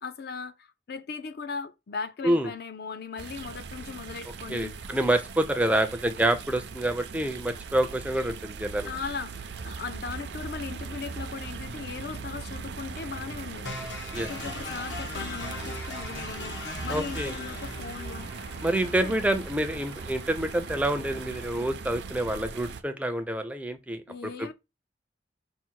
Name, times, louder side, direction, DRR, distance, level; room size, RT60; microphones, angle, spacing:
voice 1, 0.0-4.8 8.8-18.3 19.0-19.5 24.1-24.5, left 5 dB, 55° left, 0.5 m, -38 dB
sound 1, 3.2-22.8, right 5 dB, 65° right, 0.5 m, -39 dB
voice 2, 4.5-8.9 14.1-14.3 16.9-17.3 18.6-24.5, right 1 dB, 10° right, 0.4 m, -27 dB
sound 2, 13.7-21.7, left 3 dB, 75° left, 1.1 m, -41 dB
5.5 x 2.1 x 4.5 m
head